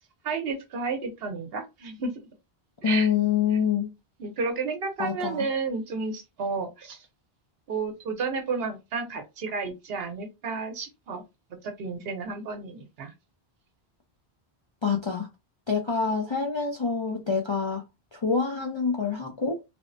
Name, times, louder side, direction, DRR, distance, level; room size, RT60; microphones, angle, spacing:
voice 1, 0.2-2.1 2.8-3.1 4.2-7.1 7.7-11.2 11.6-13.1, right 4 dB, 70° right, 0.9 m, -32 dB
voice 2, 2.8-3.9 5.0-5.5 14.8-15.3 15.7-17.8 18.1-19.6, left 6 dB, 45° left, 0.3 m, -26 dB
3.3 x 2.0 x 2.5 m
omnidirectional pair, 1.1 m